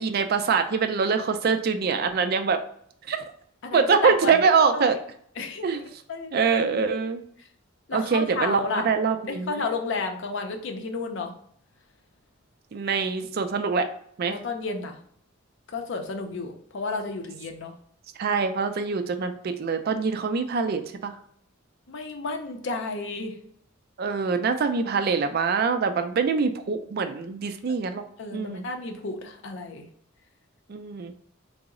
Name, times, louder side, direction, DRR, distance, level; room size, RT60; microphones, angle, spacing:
voice 1, 0.0-2.6 3.1-3.2 3.7-5.0 5.6-5.8 6.3-7.2 7.9-9.6 12.7-13.9 14.2-14.4 18.2-21.1 24.0-28.0 28.3-28.7 30.7-31.1, right 5 dB, 50° right, 9 dB, 0.4 m, -24 dB
voice 2, 3.6-4.4 4.7-4.8 5.4-5.8 6.1-6.4 7.9-8.9 9.3-11.3 14.3-15.0 15.7-17.7 21.9-23.3 28.2-29.9, left 3 dB, 60° left, 4 dB, 0.5 m, -32 dB
3.8 x 2.0 x 3.6 m, 0.65 s
head